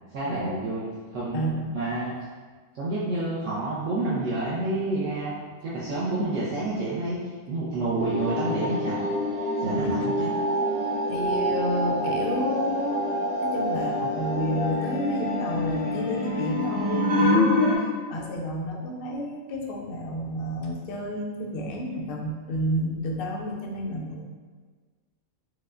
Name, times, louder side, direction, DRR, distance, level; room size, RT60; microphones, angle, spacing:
voice 1, 0.1-1.4 1.7-2.1 2.7-5.3 5.6-7.2 7.5-9.0 9.6-10.3, right 2 dB, 65° right, -9 dB, 0.9 m, -28 dB
voice 2, 1.3-1.7 9.6-10.1 11.1-13.1 13.4-24.2, equal, 90° left, 0 dB, 0.5 m, -30 dB
sound 1, 8.0-17.8, left 1 dB, 35° right, 1.0 m, -26 dB
4.8 x 2.2 x 2.4 m, 1.5 s
omnidirectional pair, 1.5 m